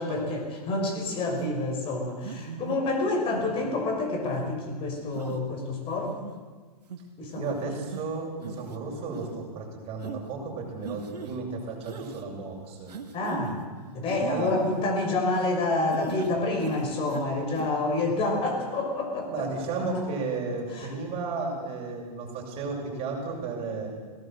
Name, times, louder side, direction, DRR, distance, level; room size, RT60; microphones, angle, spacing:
voice 1, 0.0-6.1 7.2-7.7 13.1-13.6 13.9-19.5 20.7-20.9, left 2 dB, 25° left, 3 dB, 5.9 m, -28 dB
sound 1, 1.4-1.6 2.2-2.8 3.3-3.8 4.3-4.6 5.1-5.4 5.9-6.4 6.9-7.0 7.3-7.6 7.9-8.0 8.4-8.8 9.1-9.3 10.0-10.2 10.8-11.3 11.8-12.2 12.9-13.6 14.1-15.6 15.9-16.3 16.6-17.3 17.5-17.7, right 6 dB, 90° right, 2.1 m, -38 dB
voice 2, 7.4-12.9 14.2-14.5 19.3-23.9, right 4 dB, 30° right, -1 dB, 7.4 m, -33 dB
20.5 x 18.5 x 7.8 m, 1.4 s
hypercardioid pair, 135°, 20 cm